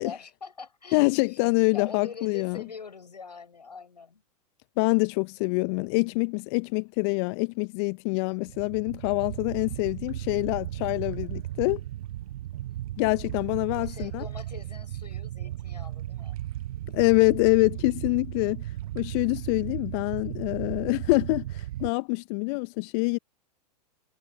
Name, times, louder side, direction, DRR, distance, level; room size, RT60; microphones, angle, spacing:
voice 1, 0.0-1.4 1.7-4.2 12.5-12.6 13.7-16.4, left 5 dB, 80° left, 7.0 m, -43 dB
voice 2, 0.9-2.6 4.8-11.8 13.0-14.2 16.9-18.7 18.9-23.2, left 33 dB, 40° left, 0.6 m, -25 dB
sound 1, 8.5-21.9, right 14 dB, 60° right, 0.4 m, -36 dB
figure-of-eight pair, 100°, 21 cm